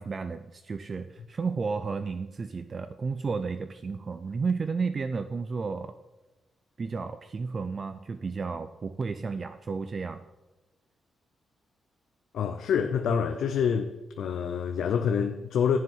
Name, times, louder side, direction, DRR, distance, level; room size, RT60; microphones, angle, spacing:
voice 1, 0.0-5.9 6.8-10.2, right 4 dB, 40° right, 0.5 m, -32 dB
voice 2, 12.3-13.9 14.2-15.8, left 7 dB, 85° left, 0.8 m, -26 dB
14.5 x 7.5 x 5.6 m
cardioid pair, 130°, 0 cm